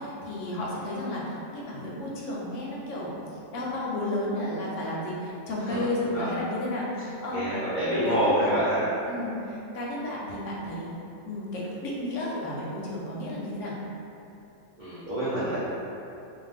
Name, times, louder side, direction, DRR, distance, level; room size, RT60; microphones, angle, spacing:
voice 1, 0.0-3.2 3.5-8.5 9.1-10.9 11.2-13.7, left 1 dB, 70° left, -5 dB, 0.8 m, -32 dB
voice 2, 7.3-8.8 14.8-15.6, equal, 65° right, -11 dB, 0.4 m, -26 dB
2.5 x 2.2 x 3.3 m, 2.8 s
omnidirectional pair, 1.5 m